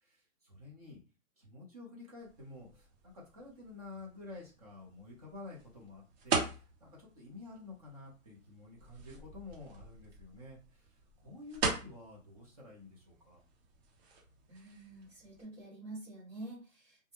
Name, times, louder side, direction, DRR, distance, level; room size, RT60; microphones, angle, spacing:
voice 1, 0.0-1.0 1.4-13.4, left 3 dB, 30° right, -4 dB, 0.8 m, -51 dB
sound 1, 2.2-15.4, right 4 dB, 50° right, 1.1 m, -42 dB
voice 2, 14.5-17.1, right 2 dB, 10° left, -13 dB, 0.6 m, -48 dB
2.3 x 2.0 x 2.9 m, 0.33 s
hypercardioid pair, 170°, 40 cm